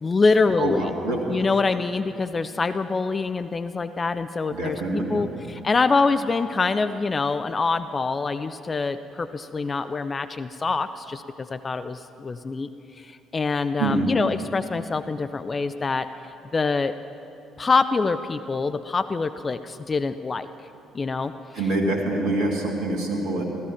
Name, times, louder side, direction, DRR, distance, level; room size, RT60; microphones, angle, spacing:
voice 1, 0.0-0.8 1.3-4.8 5.1-12.7 13.0-16.1 16.5-16.9 17.6-20.5 20.9-21.3, left 4 dB, 30° left, 11 dB, 0.5 m, -25 dB
voice 2, 0.6-1.3 4.5-5.2 13.8-14.1 21.5-23.4, right 2 dB, 60° right, -1 dB, 1.9 m, -25 dB
16.0 x 14.0 x 5.9 m, 2.7 s
figure-of-eight pair, 45°, 0 cm